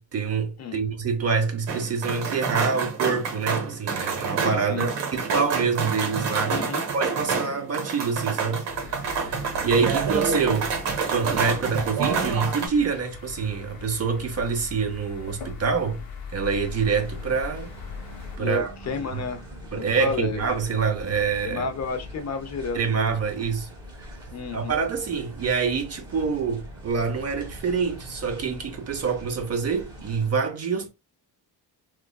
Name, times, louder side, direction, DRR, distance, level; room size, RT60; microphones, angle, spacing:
voice 1, 0.0-6.6 6.9-10.7 11.1-16.0 16.3-17.7 18.4-18.7 19.1-19.2 19.7-21.7 22.7-23.7 24.0-24.2 24.5-30.9, right 5 dB, 40° right, 0.7 m, -26 dB
sound 1, 1.7-12.7, right 5 dB, 85° right, 0.9 m, -28 dB
voice 2, 6.5-6.9 18.4-19.4 19.7-20.5 21.4-23.2 24.3-24.8, left 4 dB, 40° left, 0.5 m, -31 dB
sound 2, 8.7-18.4, left 5 dB, 60° left, 1.0 m, -40 dB
sound 3, 16.5-30.3, equal, 10° right, 0.9 m, -42 dB
3.1 x 2.3 x 2.2 m
cardioid pair, 130°, 41 cm